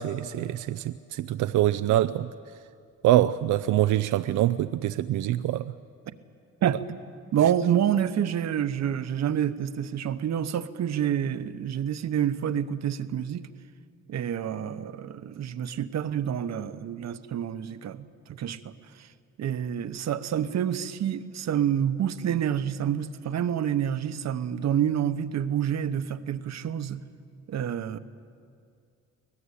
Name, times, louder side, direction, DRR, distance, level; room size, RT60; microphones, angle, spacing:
voice 1, 0.0-2.3 3.0-5.7 6.6-6.7, right 13 dB, 80° right, 12 dB, 0.6 m, -24 dB
voice 2, 6.6-7.0 7.3-13.5 14.1-18.7 19.4-27.0 27.5-28.0, right 9 dB, 60° right, 12 dB, 1.0 m, -28 dB
24.5 x 18.5 x 8.4 m, 2.3 s
cardioid pair, 90°, 30 cm